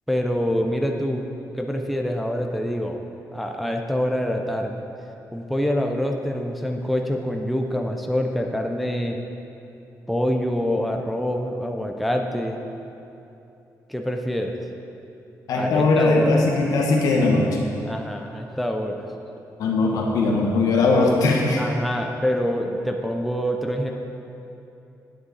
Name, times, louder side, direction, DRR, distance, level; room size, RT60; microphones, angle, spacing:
voice 1, 0.1-1.2 1.5-3.0 3.3-4.8 5.3-9.2 10.1-12.6 13.9-14.6 15.5-16.4 17.9-19.0 21.6-23.9, equal, ahead, 2 dB, 0.4 m, -25 dB
voice 2, 15.5-17.7 19.6-21.6, left 3 dB, 70° left, 0 dB, 1.0 m, -20 dB
9.7 x 8.2 x 3.9 m, 2.8 s
cardioid pair, 180°, 6 cm